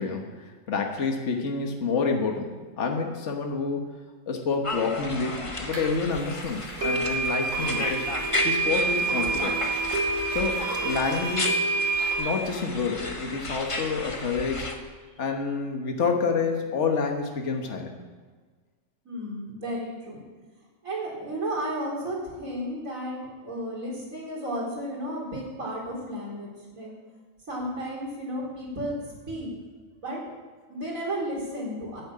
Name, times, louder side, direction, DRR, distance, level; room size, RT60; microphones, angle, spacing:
voice 1, 0.0-3.8 4.3-8.1 8.4-9.6 10.3-11.6 12.2-14.8 15.2-17.9, left 4 dB, 60° left, 3 dB, 1.7 m, -28 dB
sound 1, 4.6-14.8, left 2 dB, 25° left, 1.2 m, -34 dB
sound 2, 5.7-5.8 6.8-12.2, right 3 dB, 65° right, 2.6 m, -27 dB
voice 2, 19.0-20.2 20.8-26.9 27.5-29.5 30.0-30.2 30.7-32.0, equal, 80° right, -3 dB, 4.2 m, -33 dB
10.5 x 8.9 x 8.6 m, 1.4 s
omnidirectional pair, 1.4 m